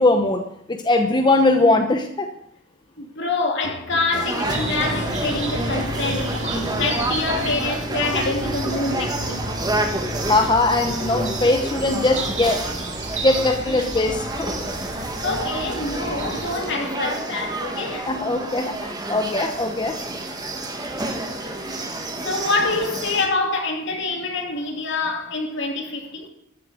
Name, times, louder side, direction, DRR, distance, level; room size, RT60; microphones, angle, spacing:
voice 1, 0.0-2.3 10.3-12.6 13.2-14.5 18.1-20.0, left 2 dB, 20° left, 0.9 m, -20 dB
voice 2, 3.0-9.4 14.8-18.1 21.0-26.3, left 3 dB, 60° left, 2.6 m, -26 dB
sound 1, 3.6-7.5 8.1-12.0, left 1 dB, 40° left, 3.1 m, -38 dB
sound 2, 4.1-23.3, right 2 dB, 20° right, 1.8 m, -29 dB
sound 3, 4.4-16.5, right 1 dB, 35° right, 3.6 m, -31 dB
14.0 x 7.5 x 7.6 m
head